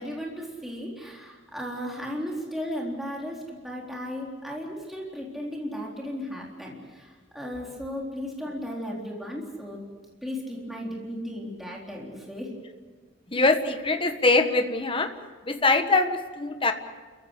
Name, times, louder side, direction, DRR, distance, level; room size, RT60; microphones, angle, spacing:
voice 1, 0.0-9.8 10.2-12.5, equal, ahead, -3 dB, 3.9 m, -35 dB
voice 2, 13.3-15.1 15.4-16.7, left 3 dB, 30° left, 7 dB, 1.5 m, -23 dB
30.0 x 15.5 x 8.3 m, 1.4 s
head